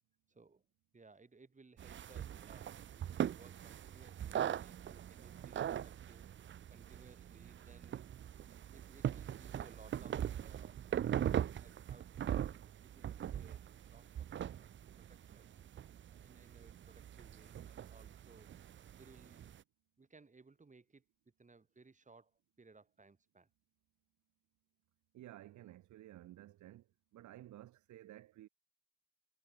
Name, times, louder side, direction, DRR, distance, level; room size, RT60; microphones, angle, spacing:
voice 1, 0.3-0.6 0.9-8.3 8.7-11.0 11.6-14.3 14.6-14.7 15.0-15.5 16.1-18.5 19.0-19.5 20.0-21.0 21.4-22.3 22.6-23.5, right 4 dB, 25° right, 4.2 m, -62 dB
sound 1, 1.8-19.6, right 10 dB, 40° right, 0.5 m, -41 dB
voice 2, 25.1-26.9 27.1-28.5, right 14 dB, 70° right, 1.0 m, -54 dB
cardioid pair, 90°, 30 cm